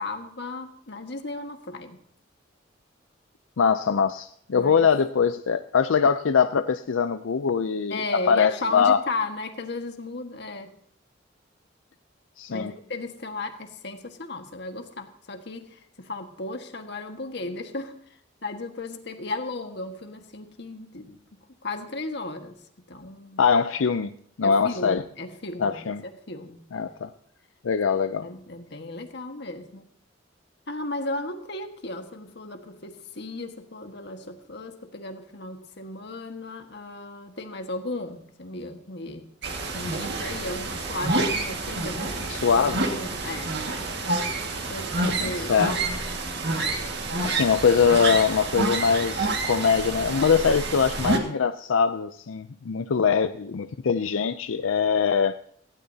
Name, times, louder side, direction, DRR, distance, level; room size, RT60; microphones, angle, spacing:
voice 1, 0.0-2.0 4.5-4.9 7.9-10.8 12.5-17.9 18.4-21.2 21.6-22.6 22.9-23.5 24.4-27.1 28.2-29.9 30.7-39.3 39.7-43.5 44.7-45.6, left 2 dB, 60° left, 6 dB, 1.6 m, -35 dB
voice 2, 3.6-9.0 12.4-12.7 23.4-24.1 24.4-25.0 25.6-26.0 26.7-27.1 27.6-28.3 42.3-42.8 45.2-45.7 47.2-55.4, left 6 dB, 90° left, 10 dB, 0.5 m, -22 dB
sound 1, 39.4-51.2, right 2 dB, 60° right, 1.9 m, -28 dB
18.5 x 16.0 x 2.8 m, 0.64 s
head